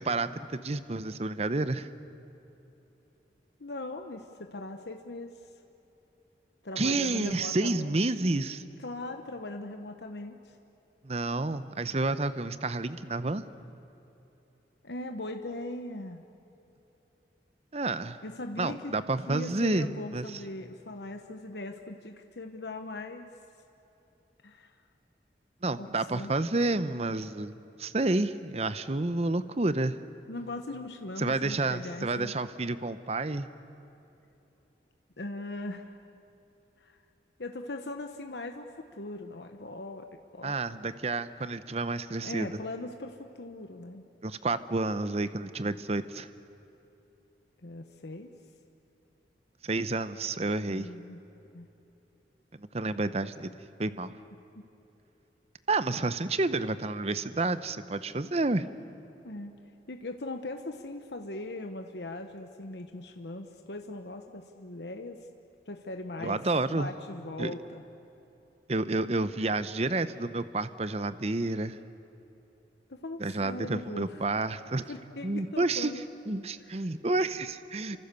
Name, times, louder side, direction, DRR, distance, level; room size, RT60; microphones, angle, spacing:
voice 1, 0.0-1.9 6.8-8.6 11.0-13.4 17.7-18.2 18.6-20.4 25.6-30.0 31.2-33.5 40.4-42.5 44.2-46.3 49.6-50.9 52.5-53.5 53.8-54.1 55.7-58.7 66.2-66.9 67.4-67.5 68.7-71.8 73.2-74.9 75.2-75.9 76.3-78.0, right 2 dB, 35° right, 13 dB, 0.8 m, -30 dB
voice 2, 3.6-5.5 6.6-8.0 8.8-10.6 14.8-16.2 18.2-19.0 19.3-23.3 24.4-24.8 25.8-26.3 30.3-32.3 35.2-36.0 36.8-37.0 37.4-40.1 40.3-40.6 42.2-44.0 47.6-48.3 50.7-51.2 51.5-51.7 54.5-54.6 59.2-59.5 59.9-65.3 65.7-66.4 66.7-67.8 72.9-74.2 74.9-76.0 76.6-76.8, left 2 dB, 75° left, 5 dB, 1.1 m, -40 dB
29.0 x 25.5 x 6.9 m, 3.0 s
head